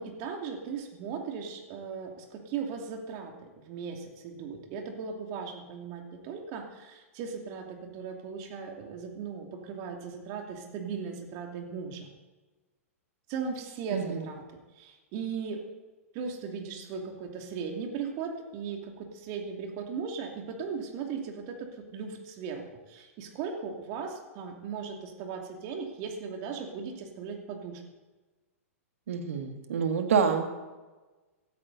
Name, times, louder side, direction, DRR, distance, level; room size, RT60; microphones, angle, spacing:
voice 1, 0.0-12.1 13.3-14.4 14.8-15.6 16.1-27.8, right 6 dB, 40° right, 3 dB, 2.7 m, -37 dB
voice 2, 13.9-14.3 29.1-30.5, right 6 dB, 65° right, 6 dB, 1.9 m, -27 dB
17.0 x 13.0 x 4.1 m, 1.2 s
figure-of-eight pair, 105°, 8 cm